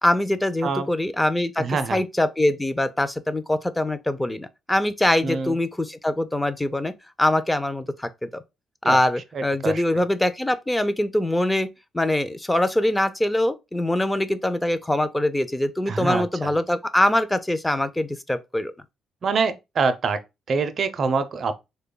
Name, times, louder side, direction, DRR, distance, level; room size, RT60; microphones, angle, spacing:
voice 1, 0.0-1.6 1.9-6.9 7.2-8.4 8.8-11.7 11.9-18.7, left 1 dB, 10° left, 0.4 m, -23 dB
voice 2, 1.6-2.0 5.2-5.6 8.8-9.0 9.3-10.0 15.9-16.5 19.2-20.2 20.5-21.5, right 4 dB, 50° right, 0.4 m, -25 dB
3.3 x 2.2 x 3.7 m
cardioid pair, 90°, 0 cm